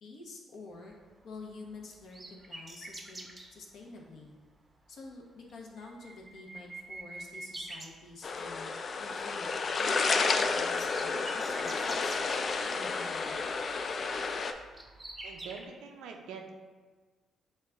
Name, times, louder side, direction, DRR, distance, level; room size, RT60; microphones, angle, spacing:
voice 1, 0.0-1.0 1.2-4.4 4.9-8.7 9.0-12.1 12.6-13.4, left 3 dB, 70° left, -1 dB, 0.8 m, -49 dB
sound 1, 0.9-3.5 4.4-4.7 5.0-5.1 5.4-8.6 8.9-9.3 9.5-15.7, right 2 dB, 25° right, 0.6 m, -47 dB
sound 2, 8.2-14.5, left 4 dB, 45° left, 0.3 m, -31 dB
voice 2, 15.2-16.5, right 5 dB, 85° right, 3 dB, 0.5 m, -44 dB
6.4 x 2.2 x 3.5 m, 1.3 s
cardioid pair, 90°, 0 cm